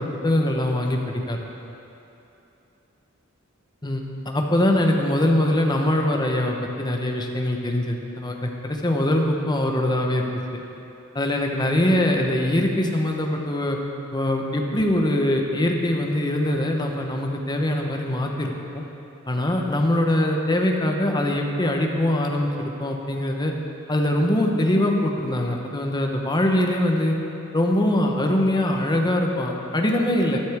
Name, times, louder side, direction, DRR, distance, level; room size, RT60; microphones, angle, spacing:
voice 1, 0.2-1.5 3.8-10.6 11.1-13.8 14.1-18.8 19.3-23.5 23.9-27.2 27.5-30.4, left 1 dB, 20° left, 2 dB, 1.0 m, -23 dB
13.0 x 11.0 x 3.5 m, 2.9 s
head